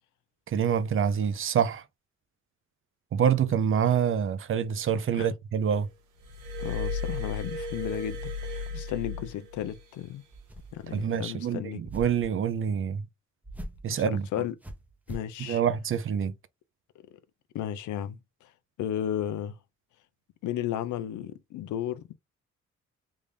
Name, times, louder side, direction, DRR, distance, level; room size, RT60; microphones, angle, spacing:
voice 1, 0.5-1.8 3.1-5.9 10.9-13.0 13.8-14.2 15.4-16.3, right 8 dB, 45° right, 0.5 m, -26 dB
Glass, 6.2-9.8 10.8-11.0, left 3 dB, 80° right, 1.0 m, -35 dB
voice 2, 6.6-10.2 10.7-11.8 13.9-14.6 15.1-15.6 17.5-18.5 18.8-19.6 20.4-22.1, left 11 dB, 75° left, 0.5 m, -34 dB
sound 1, 10.3-10.9 11.8-12.3 13.4-13.9 14.6-15.3, right 1 dB, 5° right, 0.7 m, -41 dB
3.5 x 2.5 x 3.3 m
cardioid pair, 90°, 30 cm